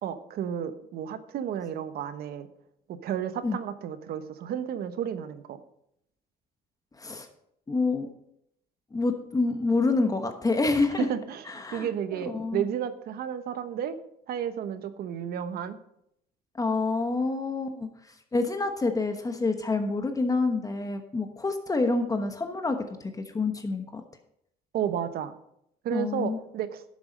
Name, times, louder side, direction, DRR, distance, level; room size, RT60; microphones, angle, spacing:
voice 1, 0.0-2.5 3.0-5.6 11.0-11.5 11.7-14.0 14.3-15.8 24.7-25.3 25.8-26.8, right 9 dB, 65° right, 11 dB, 1.0 m, -32 dB
voice 2, 7.7-8.1 8.9-11.1 11.5-12.6 16.6-17.9 18.3-24.0 25.9-26.4, left 3 dB, 20° left, 6 dB, 1.1 m, -27 dB
11.5 x 7.0 x 5.3 m, 0.76 s
cardioid pair, 110°, 17 cm